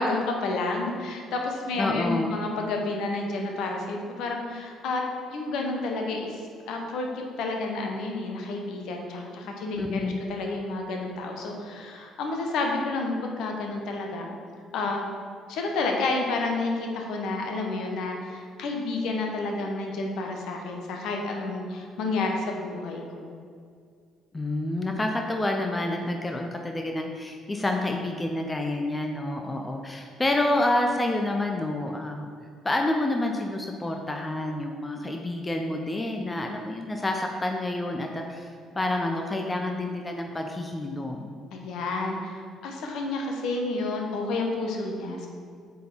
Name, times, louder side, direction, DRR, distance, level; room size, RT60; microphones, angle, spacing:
voice 1, 0.0-5.0 5.3-6.4 6.7-14.3 14.7-15.1 15.5-23.3 41.5-45.3, left 3 dB, 55° left, 1 dB, 0.9 m, -30 dB
voice 2, 1.8-2.3 9.8-10.2 24.3-32.3 32.6-41.3, left 1 dB, 20° left, 3 dB, 0.6 m, -28 dB
8.2 x 4.0 x 4.4 m, 2.1 s
figure-of-eight pair, 50°, 0 cm